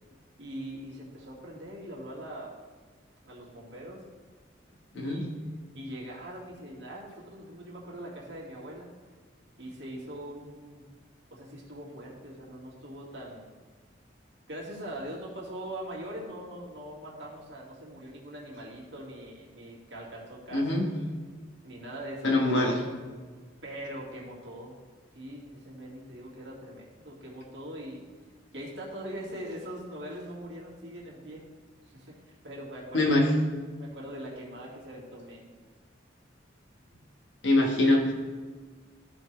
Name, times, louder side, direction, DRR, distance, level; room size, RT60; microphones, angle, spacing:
voice 1, 0.4-2.5 3.2-4.0 4.9-5.2 5.7-8.9 9.6-10.8 11.3-13.5 14.5-20.8 21.6-22.7 23.6-24.8 25.1-28.0 28.5-31.4 31.8-32.2 32.4-33.2 33.8-35.5, right 1 dB, 70° right, -4 dB, 2.1 m, -42 dB
voice 2, 20.5-20.8 22.2-22.8 32.9-33.3 37.4-38.1, left 2 dB, 80° left, 1 dB, 1.4 m, -23 dB
13.5 x 4.6 x 3.3 m, 1.5 s
head